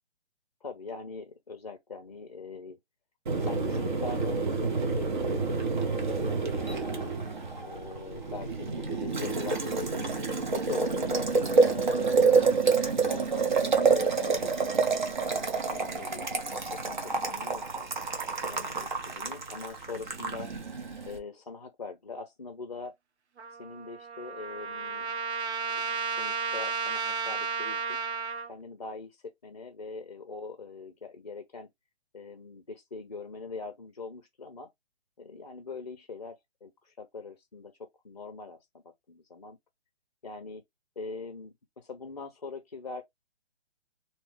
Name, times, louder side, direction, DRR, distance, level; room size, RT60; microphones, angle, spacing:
voice 1, 0.6-2.8 3.4-7.1 7.6-10.1 10.5-12.6 13.1-15.0 15.3-17.9 18.4-20.5 21.1-22.9 23.6-25.1 25.6-28.0 28.4-31.7 32.1-34.7 35.2-37.7 38.0-39.6 40.2-40.6 41.0-43.0, left 4 dB, 40° left, 0.5 m, -43 dB
Boiling, 3.3-21.2, right 4 dB, 45° right, 0.8 m, -28 dB
Trumpet, 23.4-28.5, right 5 dB, 80° right, 0.9 m, -33 dB
2.7 x 2.3 x 3.2 m
hypercardioid pair, 175°, 33 cm